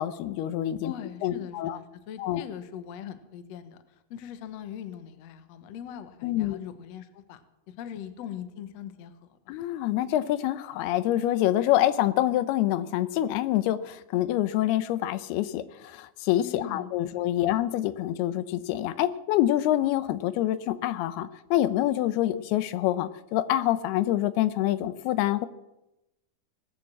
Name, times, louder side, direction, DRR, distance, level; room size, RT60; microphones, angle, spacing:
voice 1, 0.0-0.9 1.2-1.8 2.2-2.4 6.2-6.6 9.5-25.5, left 13 dB, 90° left, 14 dB, 2.8 m, -26 dB
voice 2, 0.8-9.5 16.4-17.6, left 9 dB, 70° left, 11 dB, 1.7 m, -41 dB
19.0 x 9.0 x 7.5 m, 0.94 s
omnidirectional pair, 4.4 m